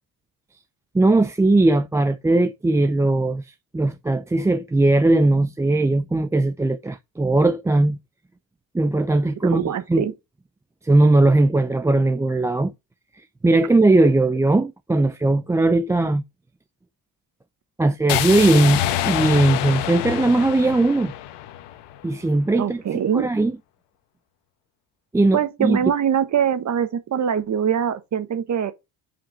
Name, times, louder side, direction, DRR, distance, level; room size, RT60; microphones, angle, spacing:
voice 1, 0.9-8.0 8.7-10.1 10.8-12.7 13.4-16.2 17.8-21.1 22.0-22.8 23.1-23.5 25.1-25.8, right 2 dB, 10° right, 0.4 m, -19 dB
voice 2, 9.4-10.1 22.6-23.3 25.3-28.7, right 8 dB, 45° right, 1.3 m, -23 dB
sound 1, 18.1-22.1, left 12 dB, 90° left, 1.1 m, -26 dB
5.8 x 5.1 x 5.1 m
cardioid pair, 110°, 41 cm